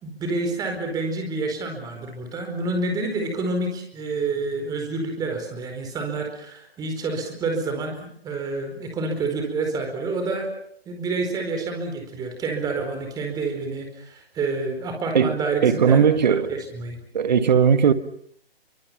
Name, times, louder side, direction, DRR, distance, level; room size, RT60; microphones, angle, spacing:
voice 1, 0.0-10.5 10.9-16.2 16.5-17.0, right 3 dB, 10° right, 4.5 m, -28 dB
voice 2, 15.6-16.5 17.1-17.9, right 7 dB, 45° right, 1.7 m, -18 dB
29.5 x 25.0 x 5.9 m
figure-of-eight pair, 135°, 30 cm